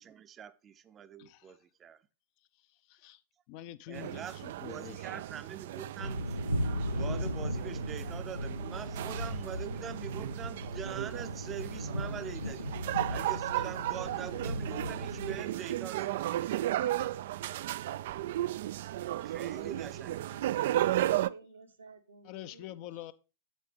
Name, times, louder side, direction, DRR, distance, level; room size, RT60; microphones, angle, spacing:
voice 1, 0.0-2.0 3.9-6.4 6.9-12.7 13.1-16.2 19.2-20.5, right 8 dB, 25° right, 0.7 m, -44 dB
voice 2, 1.2-1.6 2.9-3.2 3.5-5.2 22.2-23.1, left 13 dB, 45° left, 0.6 m, -46 dB
sound 1, 3.9-21.3, right 13 dB, 55° right, 0.3 m, -35 dB
sound 2, 6.0-15.4, equal, 85° left, 0.8 m, -36 dB
voice 3, 19.6-22.7, right 4 dB, 75° right, 1.2 m, -53 dB
8.3 x 8.2 x 3.2 m
figure-of-eight pair, 90°, 0 cm